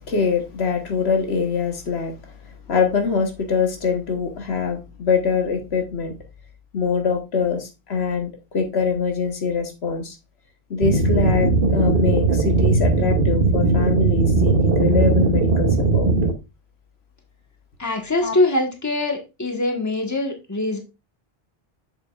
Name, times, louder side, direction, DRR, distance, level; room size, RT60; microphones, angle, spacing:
voice 1, 0.1-2.1 2.7-6.1 6.7-10.1 10.7-16.1 18.2-18.3, left 5 dB, 85° left, 1.5 m, -23 dB
sound 1, 10.8-16.3, right 3 dB, 60° right, 1.1 m, -18 dB
voice 2, 17.8-20.8, left 2 dB, 15° left, 1.3 m, -23 dB
7.1 x 7.0 x 2.4 m
omnidirectional pair, 1.0 m